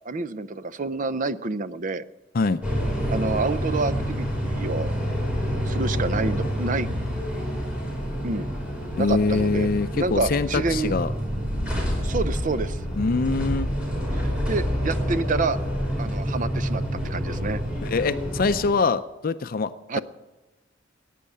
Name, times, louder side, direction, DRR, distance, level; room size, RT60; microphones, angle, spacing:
voice 1, 0.0-2.0 3.1-4.9 5.6-6.9 8.2-8.5 9.0-9.7 9.9-10.9 12.0-12.8 14.1-15.6 16.0-17.6 19.9-20.0, right 3 dB, 45° right, 14 dB, 0.6 m, -28 dB
sound 1, 2.6-18.7, equal, 5° right, 4.7 m, -27 dB
voice 2, 9.0-11.1 13.0-13.7 17.8-20.0, left 4 dB, 50° left, 12 dB, 0.5 m, -24 dB
16.0 x 9.3 x 8.6 m, 1.1 s
head